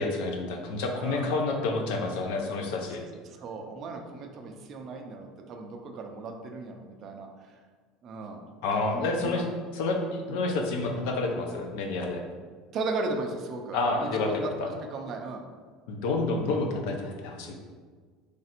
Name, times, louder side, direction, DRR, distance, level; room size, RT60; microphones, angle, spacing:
voice 1, 0.0-3.0 8.6-9.5 9.7-12.2 13.7-14.7 15.9-17.5, left 3 dB, 65° left, 2 dB, 0.6 m, -29 dB
voice 2, 0.9-1.3 3.3-7.3 8.0-8.5 8.8-9.5 12.7-15.4, right 3 dB, 35° right, 3 dB, 0.4 m, -36 dB
3.3 x 2.5 x 4.2 m, 1.6 s
cardioid pair, 170°, 0 cm